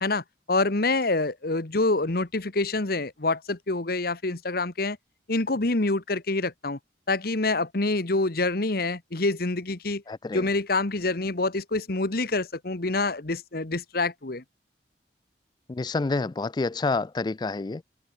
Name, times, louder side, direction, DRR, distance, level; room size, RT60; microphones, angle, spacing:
voice 1, 0.0-5.0 5.3-6.8 7.1-10.0 10.3-14.4, left 2 dB, 55° left, 1.4 m, -26 dB
voice 2, 10.1-10.4 15.7-17.8, left 3 dB, 25° left, 0.3 m, -28 dB
open air
head